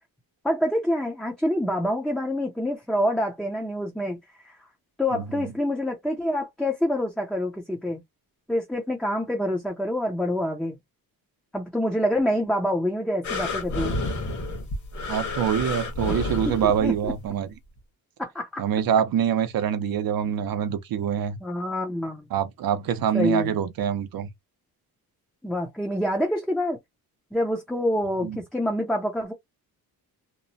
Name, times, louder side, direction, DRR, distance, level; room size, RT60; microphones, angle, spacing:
voice 1, 0.4-4.2 4.4-4.6 5.0-8.0 8.5-10.8 11.5-14.0 16.1-16.2 16.8-17.1 18.2-18.6 21.4-22.3 23.1-23.6 25.4-26.8 27.3-29.3, left 1 dB, ahead, 0.5 m, -26 dB
voice 2, 5.1-5.5 15.1-17.5 18.6-21.4 22.3-24.3 28.2-28.4, right 9 dB, 70° right, 0.7 m, -25 dB
sound 1, 13.2-17.2 17.8-17.9, left 2 dB, 50° left, 1.3 m, -30 dB
2.9 x 2.1 x 2.7 m
wide cardioid pair, 150°, 37 cm